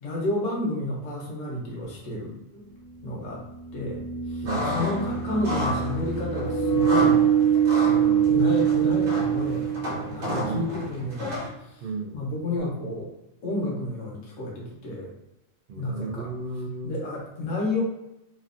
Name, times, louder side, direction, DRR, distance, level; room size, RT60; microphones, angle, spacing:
voice 1, 0.0-2.7 3.0-3.4 3.7-7.3 8.2-9.7 10.1-11.8 12.1-13.1 13.4-15.1 15.8-16.3 16.8-17.8, left 2 dB, 70° left, -3 dB, 1.2 m, -31 dB
sound 1, 1.9-2.0 3.4-10.3, right 8 dB, 80° right, 1.1 m, -24 dB
voice 2, 4.4-4.8 7.9-8.3 10.2-10.7 11.8-12.2 15.7-17.0, right 4 dB, 65° right, 2 dB, 0.5 m, -34 dB
sound 2, 4.5-11.5, left 1 dB, 40° right, 1.1 m, -32 dB
3.2 x 2.4 x 2.5 m, 0.89 s
omnidirectional pair, 1.3 m